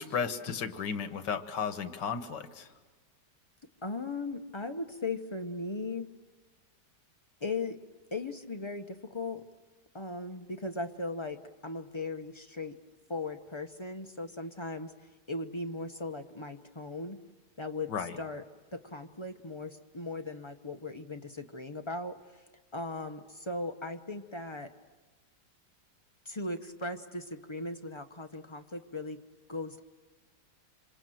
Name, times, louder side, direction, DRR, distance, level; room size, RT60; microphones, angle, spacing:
voice 1, 0.0-2.7 17.9-18.2, left 6 dB, 90° left, 10 dB, 1.9 m, -34 dB
voice 2, 3.8-6.1 7.4-7.8 8.1-9.4 9.9-12.8 13.1-14.9 15.3-17.2 17.6-18.4 18.7-22.2 22.7-24.7 26.2-29.2 29.5-29.8, left 2 dB, 30° left, 6 dB, 0.5 m, -38 dB
26.5 x 25.5 x 7.7 m, 1.3 s
omnidirectional pair, 1.8 m